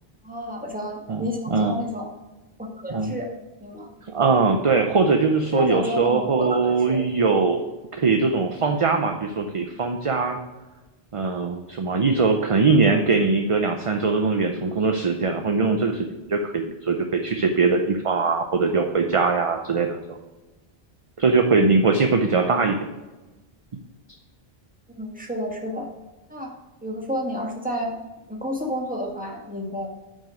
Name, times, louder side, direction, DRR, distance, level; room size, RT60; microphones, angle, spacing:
voice 1, 0.2-2.1 2.6-3.3 3.6-3.9 5.5-7.0 22.4-22.6 25.0-25.9 26.3-26.5 26.8-27.9 28.3-29.9, equal, 10° right, 0 dB, 1.7 m, -30 dB
voice 2, 1.1-1.8 2.9-3.1 4.0-10.4 11.1-20.2 21.2-22.8, right 4 dB, 40° right, 5 dB, 0.6 m, -21 dB
8.9 x 6.4 x 5.1 m, 1.1 s
omnidirectional pair, 1.0 m